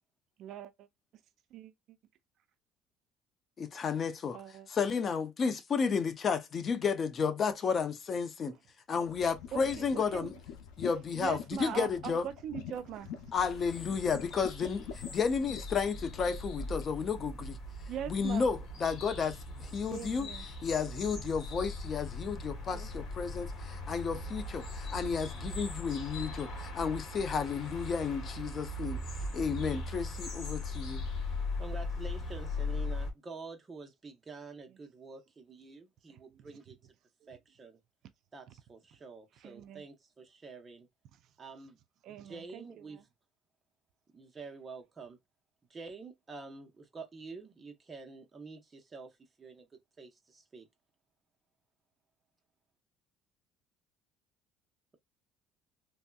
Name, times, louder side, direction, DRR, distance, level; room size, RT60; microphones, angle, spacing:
voice 1, 0.4-0.9 1.5-2.0 4.3-4.7 9.5-10.3 11.1-13.2 17.9-18.5 19.9-20.5 22.7-23.1 25.0-25.1 34.7-34.8 36.1-36.5 37.2-37.4 39.4-39.8 42.0-43.0, right 10 dB, 60° right, 0.4 m, -42 dB
voice 2, 3.6-4.4 4.7-8.6 8.9-10.3 10.8-12.3 13.3-17.6 18.1-20.3 20.6-29.0 29.3-31.0, left 6 dB, 35° left, 0.5 m, -32 dB
sound 1, 9.0-16.9, left 8 dB, 85° left, 0.6 m, -46 dB
sound 2, 13.4-33.1, left 2 dB, 55° left, 1.4 m, -39 dB
voice 3, 31.6-36.8 37.3-37.8 38.3-40.9 41.4-41.8 42.2-43.0 44.1-45.2 45.7-49.7 50.0-50.7, right 4 dB, 25° right, 0.9 m, -48 dB
3.3 x 2.7 x 2.3 m
cardioid pair, 125°, 0 cm